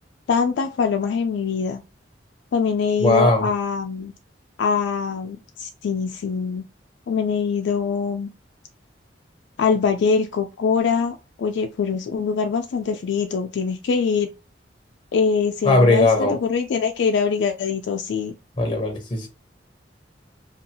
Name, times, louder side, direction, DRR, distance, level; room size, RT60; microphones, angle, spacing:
voice 1, 0.3-1.8 2.5-4.1 4.6-6.6 7.1-8.3 9.6-14.3 15.1-18.3, left 5 dB, 75° left, 0.3 m, -23 dB
voice 2, 3.0-3.5 15.7-16.4 18.6-19.3, left 2 dB, 25° left, 0.6 m, -18 dB
2.6 x 2.3 x 2.7 m
head